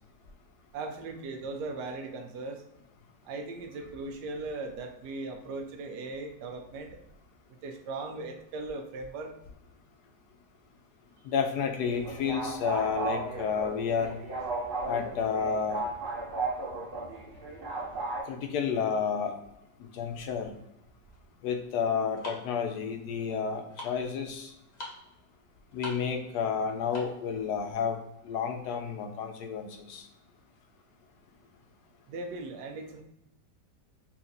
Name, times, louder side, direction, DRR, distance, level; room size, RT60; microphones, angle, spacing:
voice 1, 0.7-2.6 3.2-7.0 7.6-9.3 32.1-33.0, right 3 dB, 80° right, 5 dB, 1.2 m, -38 dB
voice 2, 11.2-14.1 14.9-15.8 18.3-19.4 19.8-20.5 21.4-24.5 25.7-28.0 28.2-30.0, left 6 dB, 70° left, 4 dB, 1.2 m, -31 dB
sound 1, 11.8-18.2, right 3 dB, 40° right, 1.0 m, -35 dB
sound 2, 21.0-27.3, left 1 dB, 30° left, 0.9 m, -46 dB
5.7 x 2.4 x 2.7 m, 0.83 s
omnidirectional pair, 1.8 m